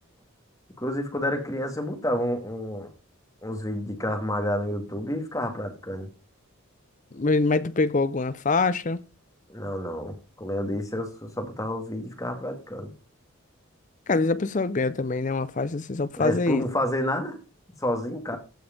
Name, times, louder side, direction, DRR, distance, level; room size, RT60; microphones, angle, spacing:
voice 1, 0.8-2.9 3.4-6.1 9.5-12.9 16.2-17.4 17.8-18.4, left 1 dB, 15° left, 2.3 m, -29 dB
voice 2, 7.1-9.0 14.1-16.6, left 3 dB, 35° left, 0.5 m, -24 dB
15.0 x 5.4 x 5.3 m
head